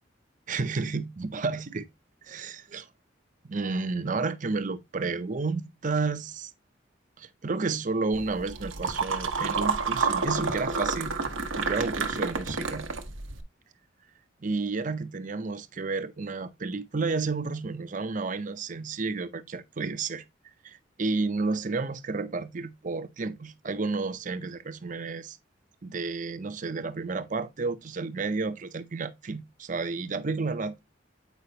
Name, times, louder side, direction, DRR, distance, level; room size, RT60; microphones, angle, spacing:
voice 1, 0.5-1.9 2.2-2.9 3.4-6.5 7.2-11.1 11.5-12.9 14.4-20.2 20.6-25.4 25.8-30.8, right 4 dB, 40° right, 0.6 m, -31 dB
sound 1, 8.1-13.4, right 4 dB, 85° right, 1.0 m, -29 dB
8.1 x 5.0 x 2.8 m
head